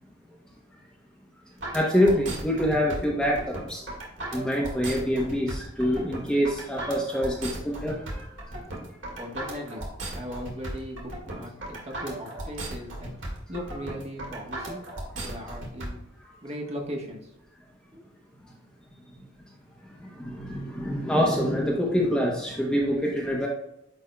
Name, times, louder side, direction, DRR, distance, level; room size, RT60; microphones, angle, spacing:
sound 1, 1.6-15.9, right 1 dB, 70° right, 1.9 m, -36 dB
voice 1, 1.7-3.8 4.3-8.3 20.2-23.5, equal, 5° left, -2 dB, 0.9 m, -25 dB
voice 2, 9.1-9.9 10.1-14.8 15.1-16.0 16.4-17.3 17.9-18.0, equal, 35° right, 0 dB, 1.3 m, -38 dB
9.4 x 4.4 x 2.3 m, 0.83 s
head